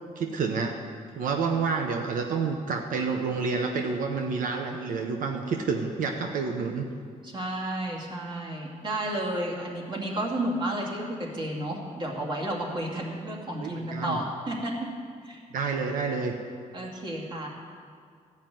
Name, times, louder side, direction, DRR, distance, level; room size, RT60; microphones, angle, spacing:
voice 1, 0.2-0.8 1.1-6.9 13.6-14.2 15.5-16.4, right 5 dB, 85° right, 3 dB, 0.9 m, -29 dB
voice 2, 7.2-14.9 15.2-15.4 16.7-17.5, right 1 dB, 35° right, -2 dB, 2.3 m, -32 dB
14.0 x 5.8 x 9.2 m, 2.1 s
cardioid pair, 135°, 14 cm